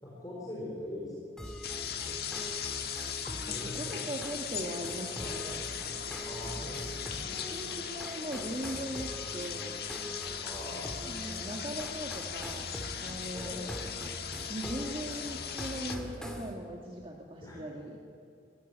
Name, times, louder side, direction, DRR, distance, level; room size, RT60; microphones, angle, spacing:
voice 1, 0.0-1.4 2.0-2.2 3.5-4.0 5.2-5.3 6.2-7.3 10.4-11.4 13.3-13.7 17.4-17.6, left 1 dB, 20° left, -5 dB, 4.7 m, -42 dB
sound 1, 1.4-16.0, left 8 dB, 55° left, 1.6 m, -39 dB
sound 2, 1.4-16.5, equal, 5° left, 2.2 m, -43 dB
voice 2, 3.5-5.6 7.3-9.7 11.0-12.7 13.0-13.7 14.5-18.0, right 1 dB, 30° right, 0 dB, 1.8 m, -40 dB
22.5 x 16.5 x 10.0 m, 2.4 s
head